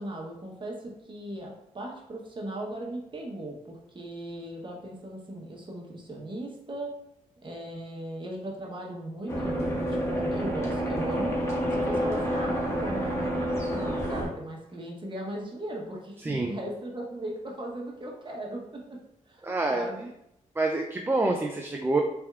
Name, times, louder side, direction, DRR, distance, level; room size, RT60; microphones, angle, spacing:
voice 1, 0.0-7.0 7.4-11.3 11.7-19.0 19.3-20.1, right 1 dB, 35° right, -1 dB, 1.1 m, -38 dB
sound 1, 9.3-14.3, equal, 20° left, 1.4 m, -28 dB
voice 2, 16.2-16.5 19.4-19.9 20.6-22.0, right 2 dB, 15° right, 1 dB, 0.4 m, -27 dB
4.3 x 3.4 x 2.4 m, 0.80 s
cardioid pair, 70°, 14 cm